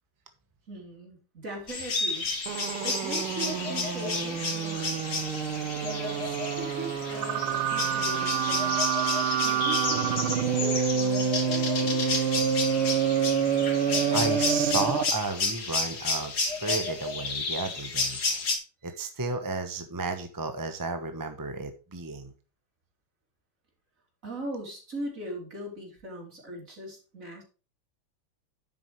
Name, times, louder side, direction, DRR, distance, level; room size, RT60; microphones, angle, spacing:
voice 1, 0.7-5.0 5.8-12.0 24.2-27.4, right 1 dB, 40° right, 0 dB, 3.7 m, -40 dB
sound 1, 1.7-18.6, left 3 dB, 50° left, 2.5 m, -31 dB
sound 2, 2.5-15.2, right 7 dB, 85° right, 1.9 m, -28 dB
voice 2, 14.1-18.2 18.8-22.3, right 3 dB, 20° right, 7 dB, 0.5 m, -33 dB
10.5 x 8.1 x 3.1 m, 0.34 s
omnidirectional pair, 2.3 m